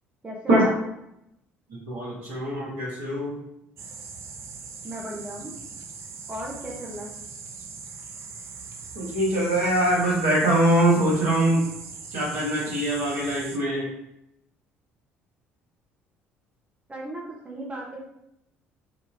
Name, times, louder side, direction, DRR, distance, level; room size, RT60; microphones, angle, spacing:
voice 1, 0.2-0.7 4.8-5.5 6.3-7.1 16.9-18.0, right 1 dB, 20° right, -3 dB, 1.0 m, -35 dB
voice 2, 1.9-3.3 8.9-11.6 12.1-13.9, right 1 dB, 65° right, -5 dB, 1.5 m, -23 dB
sound 1, 3.8-13.6, right 5 dB, 45° right, 0.5 m, -41 dB
4.0 x 2.8 x 3.5 m, 0.82 s
figure-of-eight pair, 55°, 7 cm